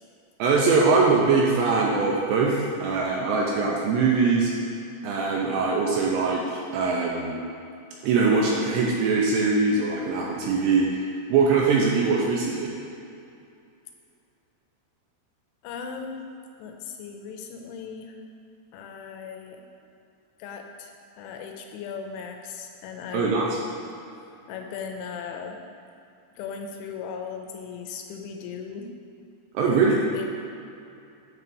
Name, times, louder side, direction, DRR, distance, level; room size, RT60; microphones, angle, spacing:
voice 1, 0.4-4.5 5.0-7.4 8.0-11.0 11.3-12.7 23.1-23.5 29.5-30.0, right 4 dB, 80° right, -3 dB, 2.6 m, -22 dB
voice 2, 15.6-16.2 16.6-18.2 18.7-19.6 20.4-23.7 24.5-25.6 26.3-28.9 29.6-29.7 30.1-30.3, left 6 dB, 80° left, 3 dB, 2.9 m, -37 dB
9.4 x 3.3 x 6.8 m, 2.6 s
omnidirectional pair, 5.7 m